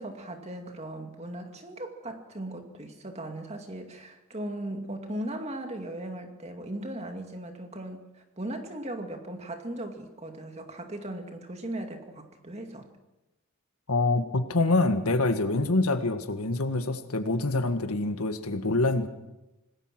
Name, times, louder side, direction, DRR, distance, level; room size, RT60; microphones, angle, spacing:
voice 1, 0.0-12.9, right 1 dB, 30° right, 5 dB, 2.3 m, -38 dB
voice 2, 13.9-19.1, left 2 dB, 90° left, 8 dB, 1.8 m, -26 dB
26.5 x 19.5 x 6.1 m, 0.99 s
head